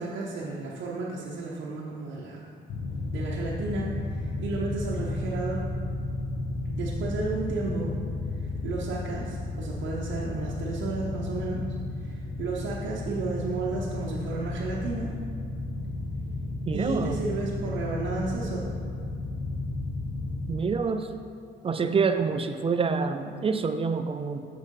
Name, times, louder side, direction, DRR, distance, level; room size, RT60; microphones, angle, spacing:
voice 1, 0.0-2.4 3.1-5.7 6.8-7.9 8.4-11.6 12.0-15.1 16.7-18.7, right 3 dB, 75° right, -5 dB, 0.8 m, -33 dB
sound 1, 2.7-20.5, left 2 dB, 85° left, 0.7 m, -33 dB
voice 2, 16.7-17.2 20.5-21.1 21.6-24.5, right 5 dB, 30° right, 9 dB, 0.4 m, -27 dB
6.4 x 5.6 x 3.7 m, 2.4 s
cardioid pair, 90°, 20 cm